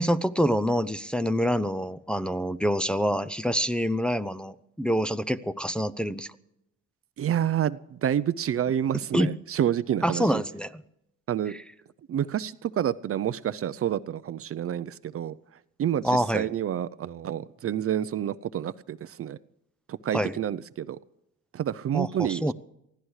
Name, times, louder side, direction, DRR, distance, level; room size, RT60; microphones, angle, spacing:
voice 1, 0.0-6.3 9.1-9.3 10.0-10.7 16.0-16.5 20.1-20.3 21.9-22.5, equal, 5° left, 10 dB, 0.6 m, -26 dB
voice 2, 7.2-10.4 11.3-11.6 12.1-15.4 15.8-19.4 19.9-21.0 21.5-22.5, right 10 dB, 50° right, 15 dB, 0.6 m, -28 dB
24.0 x 15.5 x 3.2 m, 0.84 s
cardioid pair, 90°, 30 cm